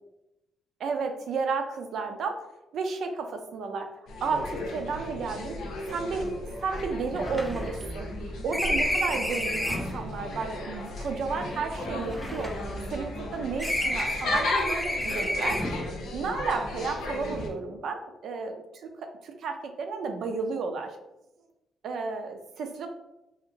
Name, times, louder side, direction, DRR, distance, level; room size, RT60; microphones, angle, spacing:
voice 1, 0.8-2.4 2.7-3.9 4.2-5.6 5.9-6.3 6.6-8.1 8.4-12.5 12.9-15.6 16.1-18.5 19.2-21.0 21.8-22.9, right 4 dB, 65° right, 5 dB, 0.4 m, -32 dB
sound 1, 4.1-17.5, left 2 dB, 85° left, 0.6 m, -35 dB
sound 2, 5.9-6.0 6.2-6.3 6.7-10.0 10.8-13.3 13.6-15.9, left 1 dB, 5° left, 0.3 m, -31 dB
2.7 x 2.5 x 2.7 m, 0.93 s
cardioid pair, 110°, 0 cm